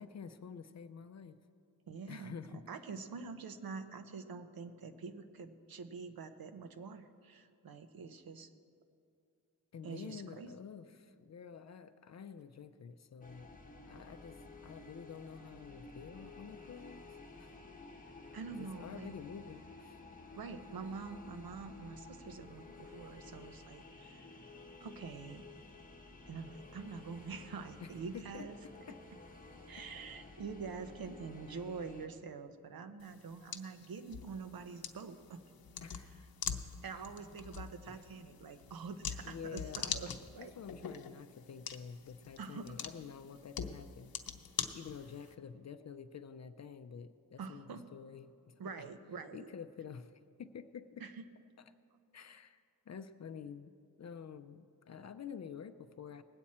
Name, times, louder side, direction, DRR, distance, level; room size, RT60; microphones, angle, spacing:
voice 1, 0.0-1.4 2.1-2.6 9.7-13.5 13.9-14.4 14.6-17.1 17.4-17.5 18.5-20.0 27.8-29.0 35.8-36.3 36.9-37.1 39.2-44.1 44.7-48.5 49.3-50.1 50.4-51.1 51.6-51.7 52.1-56.2, left 7 dB, 50° left, 10 dB, 0.5 m, -49 dB
voice 2, 1.9-8.5 9.8-10.5 18.3-19.1 20.4-24.3 24.8-25.4 26.3-28.6 29.7-35.4 36.8-40.6 42.4-42.8 47.4-47.8 48.6-49.5 51.0-51.2, right 5 dB, 80° right, 9 dB, 0.8 m, -46 dB
sound 1, 13.2-32.1, left 3 dB, 25° left, 1.1 m, -53 dB
sound 2, 33.0-45.3, left 7 dB, 80° left, 0.7 m, -44 dB
19.5 x 8.5 x 4.3 m, 2.4 s
wide cardioid pair, 120°, 35 cm